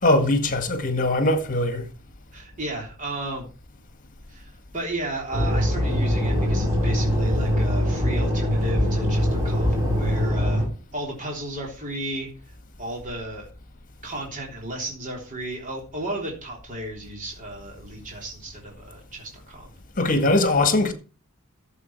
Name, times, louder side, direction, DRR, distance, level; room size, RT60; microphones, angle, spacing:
voice 1, 0.0-1.9 20.0-20.9, left 2 dB, 35° left, 1.8 m, -21 dB
voice 2, 2.3-3.5 4.3-10.6 10.9-12.3 12.8-13.5 14.0-19.7, right 1 dB, 35° right, 3.5 m, -34 dB
sound 1, 5.3-10.7, equal, 15° right, 4.7 m, -22 dB
14.0 x 7.5 x 4.6 m
head